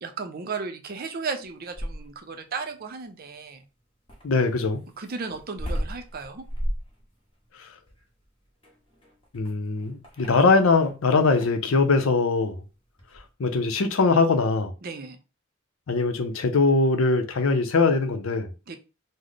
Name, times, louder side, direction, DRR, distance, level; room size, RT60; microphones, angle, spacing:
voice 1, 0.0-3.6 5.0-6.5 14.8-15.2 18.7-18.8, right 4 dB, 45° right, 0.5 m, -35 dB
sound 1, 1.4-2.3 4.1-10.9 11.3-11.7 13.0-13.3, equal, 25° left, 1.0 m, -35 dB
voice 2, 4.2-4.8 7.6-7.7 9.3-12.6 13.4-14.7 15.9-18.5, left 3 dB, 70° left, 0.6 m, -22 dB
3.2 x 2.1 x 3.9 m
head